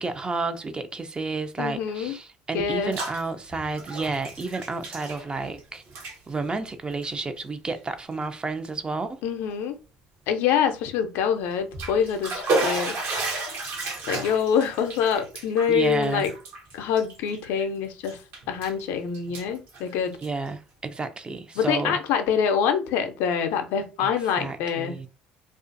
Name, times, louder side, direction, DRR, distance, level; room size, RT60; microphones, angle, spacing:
voice 1, 0.0-5.8 6.3-9.2 15.7-16.3 20.2-22.0 24.0-24.1 24.4-25.1, right 3 dB, 25° right, 0.4 m, -31 dB
voice 2, 1.6-2.2 2.5-3.0 9.2-9.8 10.3-13.5 14.0-16.3 16.7-20.1 21.6-25.0, left 7 dB, 70° left, 0.5 m, -25 dB
Bathtub (filling or washing), 2.6-3.2 3.5-5.6 5.9-6.2 6.9-7.1 7.7-7.8 8.2-8.3 11.5-17.6 18.0-18.8 19.1-20.5, right 2 dB, 60° right, 0.9 m, -32 dB
2.4 x 2.3 x 2.5 m
hypercardioid pair, 65°, 4 cm